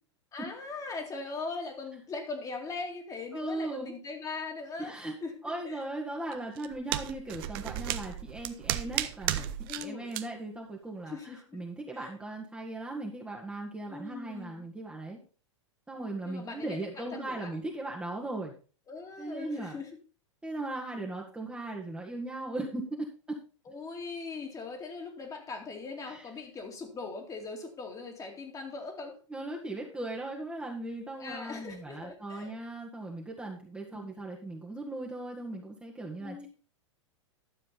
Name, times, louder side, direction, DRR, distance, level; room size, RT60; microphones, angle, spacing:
voice 1, 0.3-5.4 5.6-5.9 9.6-10.2 11.1-11.6 11.9-12.1 13.9-14.7 16.2-17.5 18.9-19.9 23.7-29.1 31.2-32.5 33.9-34.0 36.2-36.5, left 4 dB, 20° left, 3 dB, 2.4 m, -40 dB
voice 2, 3.3-3.9 4.8-5.1 5.4-15.2 15.9-18.5 19.2-19.8 20.4-23.4 26.1-26.2 29.3-36.5, right 2 dB, 5° right, -2 dB, 1.8 m, -38 dB
sound 1, 6.3-9.9 10.1-10.2, right 13 dB, 50° right, 0.8 m, -34 dB
11.5 x 7.5 x 4.0 m, 0.37 s
figure-of-eight pair, 95°, 16 cm